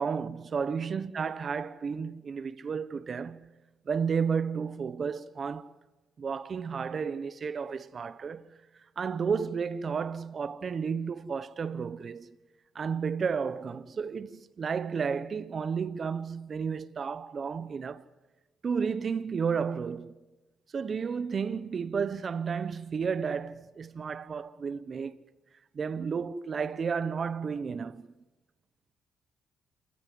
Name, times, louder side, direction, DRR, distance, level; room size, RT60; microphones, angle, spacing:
voice 1, 0.0-3.5 3.8-5.7 6.2-8.6 9.0-12.4 12.7-18.0 18.6-20.2 20.7-25.2 25.7-28.1, right 6 dB, 45° right, 1.2 m, -32 dB
28.5 x 15.5 x 9.7 m
cardioid pair, 90°, 0 cm